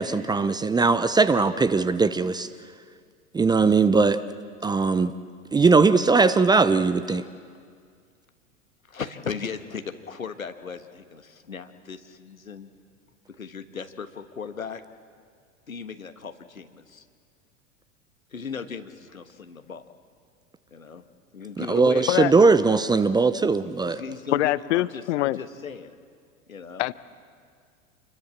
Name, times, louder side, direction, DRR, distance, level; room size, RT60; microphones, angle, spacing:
voice 1, 0.0-2.5 3.3-4.2 4.6-5.1 5.5-7.2 21.6-24.0, right 4 dB, 10° right, 13 dB, 0.6 m, -20 dB
voice 2, 8.9-12.7 13.3-14.8 15.7-17.0 18.3-20.0 20.7-21.0 21.3-22.1 23.6-26.0 26.5-26.8, left 6 dB, 85° left, 9 dB, 1.4 m, -37 dB
voice 3, 24.3-25.4 26.8-26.9, left 16 dB, 60° left, 18 dB, 0.8 m, -23 dB
27.5 x 21.0 x 7.4 m, 2.1 s
figure-of-eight pair, 85°, 40 cm